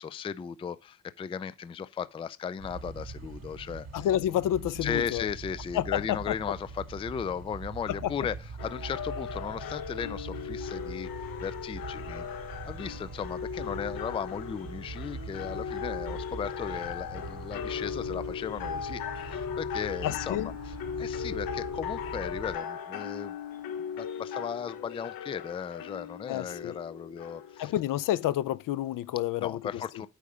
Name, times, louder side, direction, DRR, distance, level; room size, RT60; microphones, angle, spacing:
voice 1, 0.0-3.9 4.8-8.4 8.6-12.3 12.6-20.5 21.0-23.4 24.0-27.7 29.4-30.1, left 7 dB, 15° left, 0.3 m, -36 dB
sound 1, 2.6-22.6, right 4 dB, 50° right, 1.8 m, -42 dB
voice 2, 3.9-5.3 5.7-6.3 7.9-8.1 20.0-20.5 26.3-26.8 27.6-30.1, left 12 dB, 65° left, 0.6 m, -29 dB
sound 2, 8.6-28.2, left 8 dB, 85° left, 1.2 m, -38 dB
8.6 x 4.9 x 5.3 m
cardioid pair, 135°, 34 cm